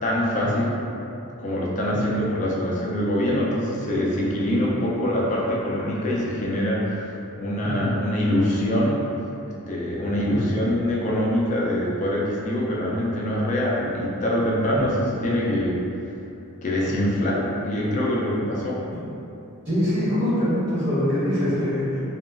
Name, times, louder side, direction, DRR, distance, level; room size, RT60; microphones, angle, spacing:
voice 1, 0.0-0.8 1.4-7.1 7.4-9.1 9.7-15.8 16.6-18.8, equal, 35° left, -4 dB, 0.3 m, -24 dB
voice 2, 19.6-22.0, left 1 dB, 55° right, -15 dB, 1.4 m, -24 dB
2.9 x 2.4 x 2.2 m, 2.7 s
head